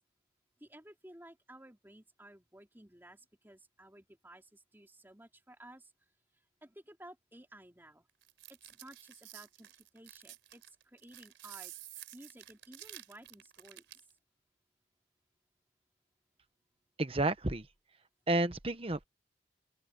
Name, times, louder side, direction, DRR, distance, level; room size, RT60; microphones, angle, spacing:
voice 1, 0.6-5.9 6.3-8.1 8.5-11.7 12.1-13.8, right 1 dB, 10° right, 3.8 m, -55 dB
sound 1, 8.2-14.1, right 14 dB, 80° right, 3.6 m, -51 dB
voice 2, 17.0-17.7 18.3-19.0, right 2 dB, 30° right, 1.1 m, -31 dB
open air
head